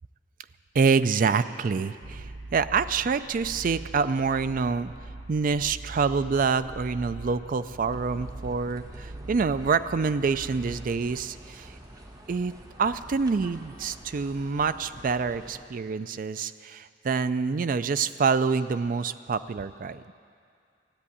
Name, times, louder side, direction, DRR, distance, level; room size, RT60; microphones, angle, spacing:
voice 1, 0.7-4.9 5.3-11.7 12.3-12.5 12.8-20.1, right 5 dB, 50° right, 13 dB, 0.4 m, -26 dB
sound 1, 2.0-11.2, right 2 dB, 85° right, 0.9 m, -42 dB
sound 2, 7.8-15.6, right 1 dB, 20° right, 1.1 m, -47 dB
13.5 x 8.3 x 9.9 m, 2.3 s
head